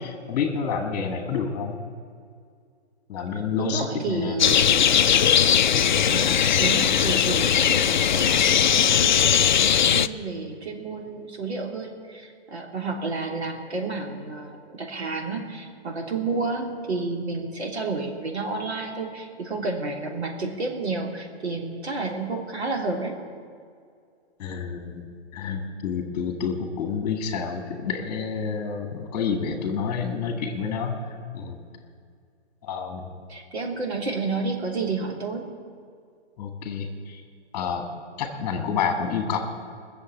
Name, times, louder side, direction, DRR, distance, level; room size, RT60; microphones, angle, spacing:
voice 1, 0.0-1.8 3.1-4.4 5.7-5.8 24.4-25.0 25.3-31.6 32.6-33.1 36.4-37.2 37.5-37.9 38.2-39.4, left 6 dB, 20° left, 4 dB, 1.8 m, -29 dB
voice 2, 3.6-4.8 6.1-9.4 9.9-23.1 33.3-35.5, right 3 dB, 75° right, 1 dB, 3.3 m, -30 dB
sound 1, 4.4-10.1, left 9 dB, 45° left, 0.4 m, -19 dB
20.0 x 7.1 x 8.5 m, 2.2 s
hypercardioid pair, 165°, 33 cm